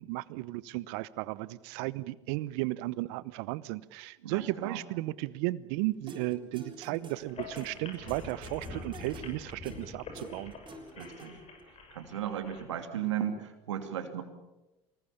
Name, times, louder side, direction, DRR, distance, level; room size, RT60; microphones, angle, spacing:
voice 1, 0.0-10.5, right 18 dB, 70° right, 18 dB, 1.0 m, -35 dB
voice 2, 4.2-4.8 11.0-11.4 11.9-14.2, right 9 dB, 85° right, 6 dB, 2.8 m, -35 dB
sound 1, 6.1-11.6, right 2 dB, 35° right, 7.0 m, -49 dB
sound 2, 7.2-12.6, left 3 dB, 45° left, 6.6 m, -45 dB
24.5 x 21.0 x 7.1 m, 1.0 s
hypercardioid pair, 75°, 15 cm